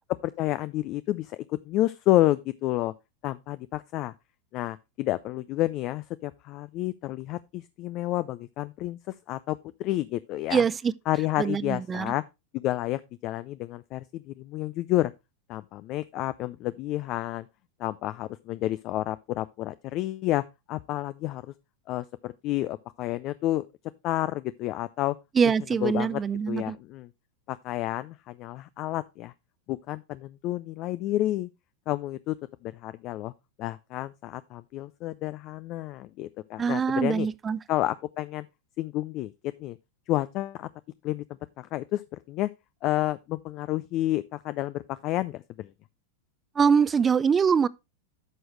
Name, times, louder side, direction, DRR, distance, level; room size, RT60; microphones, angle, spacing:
voice 1, 0.2-2.9 3.2-4.1 4.5-9.0 9.3-10.6 11.1-12.2 12.6-15.1 15.5-17.5 17.8-21.4 21.9-23.6 24.0-25.2 25.8-26.2 26.5-27.1 27.5-29.3 29.7-31.5 31.9-32.4 32.6-33.3 33.6-37.3 37.7-38.5 38.8-39.3 39.6-39.8 40.1-40.7 41.0-41.2 41.6-42.0 42.3-42.5 42.8-45.7, left 15 dB, 45° left, 0.4 m, -30 dB
voice 2, 10.5-10.9 11.4-12.1 25.4-26.8 36.6-37.6 46.6-47.7, right 6 dB, 20° right, 0.4 m, -23 dB
11.0 x 6.3 x 3.1 m
hypercardioid pair, 95°, 0 cm